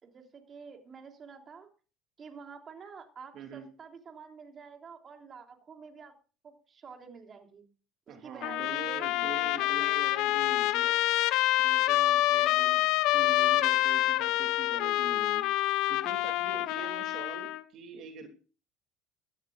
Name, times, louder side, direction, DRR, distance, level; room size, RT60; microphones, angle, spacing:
voice 1, 0.0-1.7 2.2-6.1 6.4-7.6 8.1-10.0 16.8-16.9, right 5 dB, 40° right, 4 dB, 3.2 m, -49 dB
voice 2, 3.3-3.7 8.1-11.0 11.6-12.8 13.1-15.5 15.9-18.3, right 7 dB, 60° right, 4 dB, 2.8 m, -44 dB
Trumpet, 8.4-17.6, left 16 dB, 70° left, 0.8 m, -27 dB
18.5 x 13.5 x 2.5 m, 0.36 s
supercardioid pair, 80°, 0 cm